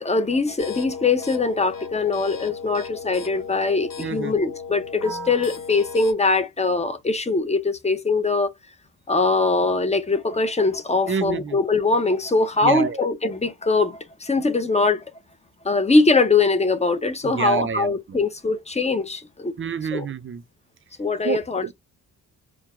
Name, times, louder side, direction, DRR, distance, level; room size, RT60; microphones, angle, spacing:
voice 1, 0.0-8.5 9.1-15.1 15.6-19.5 19.9-20.1 21.0-21.7, left 3 dB, 15° left, 0.7 m, -22 dB
sound 1, 0.6-6.1, left 5 dB, 60° left, 1.6 m, -35 dB
voice 2, 4.0-4.3 11.1-11.6 12.6-13.0 17.2-18.2 19.6-20.4 21.2-21.7, right 7 dB, 35° right, 0.5 m, -28 dB
4.6 x 2.2 x 3.6 m
cardioid pair, 120°, 38 cm